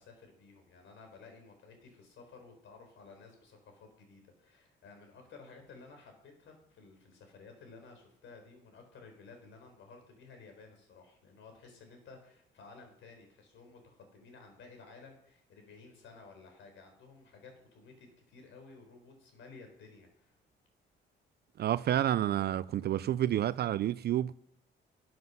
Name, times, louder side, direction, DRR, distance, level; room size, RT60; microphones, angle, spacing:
voice 1, 0.0-20.4, left 4 dB, 75° left, 4.1 m, -54 dB
voice 2, 21.6-24.3, right 12 dB, 55° right, 0.4 m, -29 dB
13.5 x 7.8 x 5.5 m
cardioid pair, 90°, 20 cm